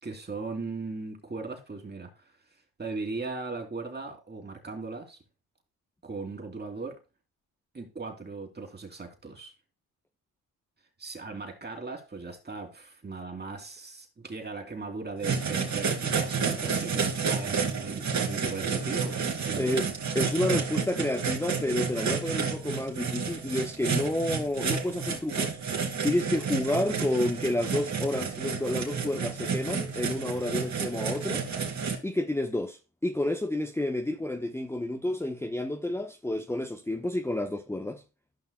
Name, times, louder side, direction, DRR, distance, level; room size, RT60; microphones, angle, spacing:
voice 1, 0.0-2.2 2.8-5.2 6.0-7.0 7.7-9.5 11.0-19.2 19.4-19.8, right 3 dB, 25° right, 2.9 m, -38 dB
sound 1, 15.2-31.9, right 5 dB, 45° right, 3.1 m, -30 dB
voice 2, 20.1-25.6 26.0-31.4 32.0-38.0, left 1 dB, 5° left, 1.0 m, -30 dB
13.0 x 5.6 x 2.3 m
supercardioid pair, 65°, 39 cm